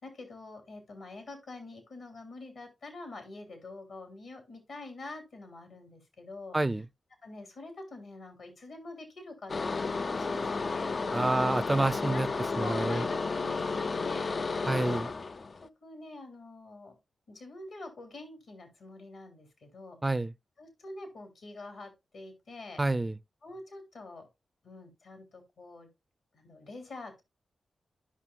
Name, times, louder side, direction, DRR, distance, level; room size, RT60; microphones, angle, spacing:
voice 1, 0.0-6.6 7.2-11.2 12.1-12.2 12.6-14.4 15.6-17.0 17.3-20.0 20.6-22.8 23.4-24.3 24.6-25.9 26.3-27.2, left 2 dB, 80° left, 2.7 m, -46 dB
voice 2, 6.5-6.8 11.1-12.3 12.6-13.0 14.7-15.1 20.0-20.3 22.8-23.2, right 2 dB, 25° right, 0.4 m, -28 dB
sound 1, 9.5-15.7, left 4 dB, 55° left, 0.3 m, -32 dB
12.5 x 5.5 x 2.3 m
supercardioid pair, 40°, 0 cm